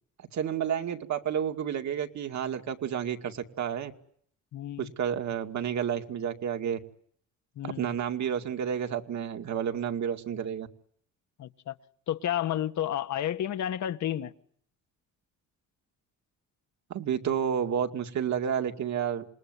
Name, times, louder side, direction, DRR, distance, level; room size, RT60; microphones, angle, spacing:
voice 1, 0.3-3.9 4.8-6.8 7.6-10.7 16.9-19.3, right 8 dB, 65° right, 2.4 m, -30 dB
voice 2, 4.5-4.9 7.6-7.9 11.4-11.7 12.1-14.3, left 11 dB, 70° left, 1.5 m, -31 dB
27.5 x 20.5 x 9.6 m
cardioid pair, 90°, 30 cm